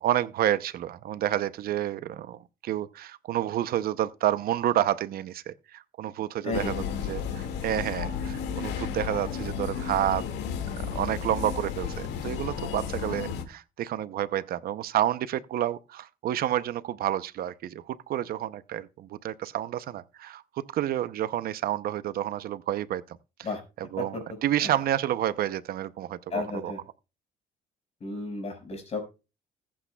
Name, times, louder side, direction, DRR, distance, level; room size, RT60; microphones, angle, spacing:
voice 1, 0.0-10.2 10.8-23.2 23.8-26.7, right 12 dB, 60° right, 0.7 m, -29 dB
voice 2, 6.4-6.9 23.4-23.6 24.0-24.2 24.6-24.7 26.3-26.8 28.0-29.0, left 3 dB, 40° left, 5.4 m, -33 dB
sound 1, 6.5-13.4, left 7 dB, 85° left, 2.0 m, -33 dB
20.0 x 8.6 x 2.3 m
cardioid pair, 110°, 17 cm